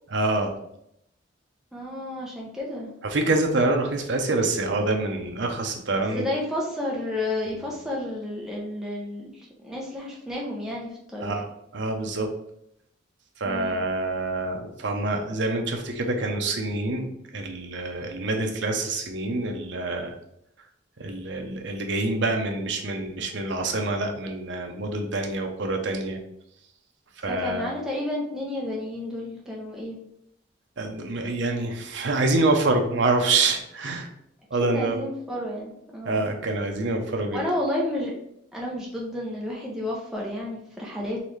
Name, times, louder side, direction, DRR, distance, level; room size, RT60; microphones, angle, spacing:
voice 1, 0.1-0.5 3.0-6.3 11.2-11.5 11.7-12.3 13.4-20.1 21.0-26.2 27.2-27.7 30.8-34.1 34.5-34.9 36.0-37.4, right 2 dB, 70° right, 3 dB, 0.7 m, -26 dB
voice 2, 1.7-2.9 6.1-11.4 13.5-13.9 27.3-30.0 34.6-36.2 37.3-38.1 38.5-41.2, left 1 dB, ahead, -4 dB, 0.6 m, -31 dB
4.0 x 3.1 x 3.2 m, 0.76 s
head